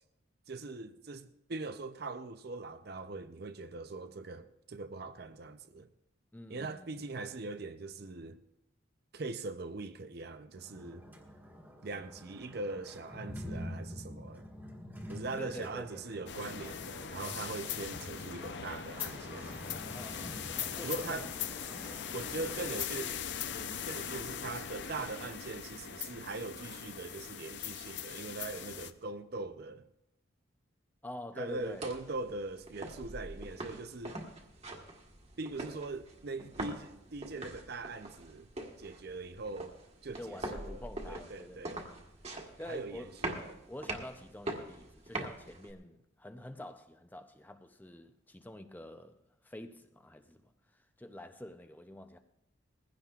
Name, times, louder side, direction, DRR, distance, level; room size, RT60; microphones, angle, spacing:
voice 1, 0.5-5.9 6.5-8.4 9.1-11.0 11.8-14.4 15.1-19.5 20.8-21.3 22.1-23.3 23.5-29.9 31.4-34.2 35.4-38.5 38.8-39.7 40.0-40.8 41.1-41.8 42.7-43.6, right 3 dB, 50° right, 0.6 m, -41 dB
voice 2, 6.3-7.1 15.4-16.2 19.9-20.4 20.7-21.3 21.7-22.0 31.0-31.9 40.1-41.9 42.6-52.2, left 1 dB, 10° left, 0.5 m, -47 dB
sound 1, 10.5-22.8, equal, 10° right, 1.4 m, -47 dB
sound 2, 16.3-28.9, left 8 dB, 60° left, 0.6 m, -40 dB
sound 3, 31.5-45.7, right 2 dB, 35° right, 1.4 m, -44 dB
20.0 x 16.0 x 2.4 m
head